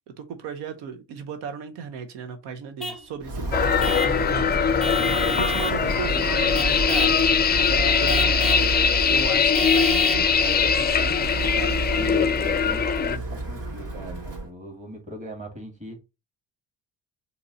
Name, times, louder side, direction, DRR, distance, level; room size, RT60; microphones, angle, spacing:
voice 1, 0.2-4.6 5.3-7.2 7.6-8.7 9.1-11.7, right 6 dB, 90° right, 0.8 m, -36 dB
Vehicle horn car horn honking / Truck, 2.8-3.1 3.8-4.2 4.8-5.8 6.5-7.2 8.1-8.7 9.5-10.3, equal, ahead, 1.0 m, -31 dB
Walk footsteps, 3.2-14.5, right 2 dB, 50° right, 2.4 m, -30 dB
sound 1, 3.5-13.2, left 7 dB, 25° left, 0.4 m, -22 dB
voice 2, 5.0-5.5 12.0-16.0, right 1 dB, 20° right, 2.2 m, -39 dB
3.8 x 3.0 x 4.0 m
cardioid pair, 100°, 41 cm